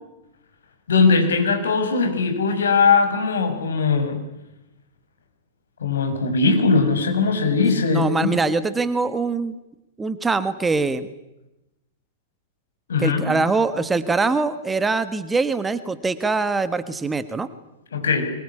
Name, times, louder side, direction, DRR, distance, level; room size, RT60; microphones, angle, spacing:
voice 1, 0.9-4.2 5.8-8.3 12.9-13.2 17.9-18.2, left 4 dB, 70° left, 6 dB, 6.1 m, -20 dB
voice 2, 7.9-9.6 10.0-11.1 13.0-17.5, right 3 dB, 10° right, 13 dB, 1.5 m, -23 dB
24.0 x 22.5 x 9.9 m, 0.94 s
figure-of-eight pair, 100°, 0 cm